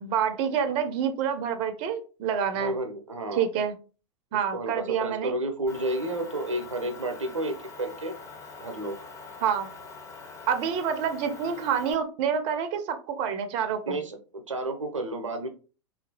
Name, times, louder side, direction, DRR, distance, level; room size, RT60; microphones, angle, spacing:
voice 1, 0.0-2.7 3.3-3.7 4.3-5.3 9.4-9.7 10.5-14.0, right 7 dB, 35° right, 8 dB, 0.4 m, -27 dB
voice 2, 2.5-3.5 4.5-8.1 8.6-9.0 13.9-14.2 14.5-15.5, right 1 dB, 80° right, 6 dB, 0.6 m, -31 dB
Motor vehicle (road) / Engine, 5.7-11.9, left 4 dB, 20° left, 0.7 m, -44 dB
2.8 x 2.5 x 2.7 m, 0.36 s
figure-of-eight pair, 90°, 16 cm